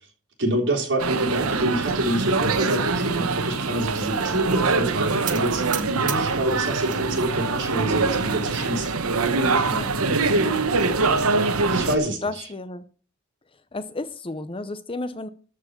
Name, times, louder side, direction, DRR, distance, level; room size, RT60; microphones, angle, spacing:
voice 1, 0.4-8.9 11.7-12.5, right 1 dB, 55° right, 3 dB, 3.5 m, -27 dB
sound 1, 1.0-12.0, right 3 dB, 90° right, 1.1 m, -23 dB
sound 2, 5.3-7.0 7.4-8.1 8.6-8.7 9.0-9.1 9.5-9.6 10.7-11.3, right 10 dB, 40° right, 1.3 m, -36 dB
voice 2, 9.7-10.7 11.6-11.7 12.2-12.8 13.7-15.3, left 2 dB, 25° left, 12 dB, 0.7 m, -33 dB
13.5 x 4.8 x 8.0 m, 0.40 s
head